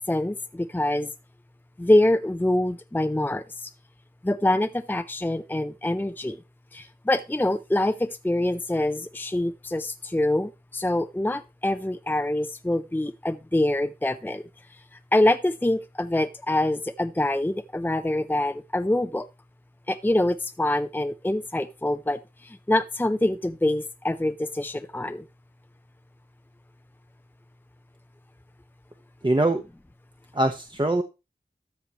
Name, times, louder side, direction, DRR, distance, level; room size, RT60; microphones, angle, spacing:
voice 1, 0.1-1.1 1.8-3.4 4.2-6.4 6.7-14.4 15.1-19.3 19.9-25.2, left 1 dB, 10° left, 10 dB, 0.6 m, -25 dB
voice 2, 29.2-29.6 30.3-31.0, right 1 dB, 30° right, 5 dB, 1.0 m, -22 dB
13.0 x 6.5 x 3.0 m, 0.27 s
wide cardioid pair, 50°, 16 cm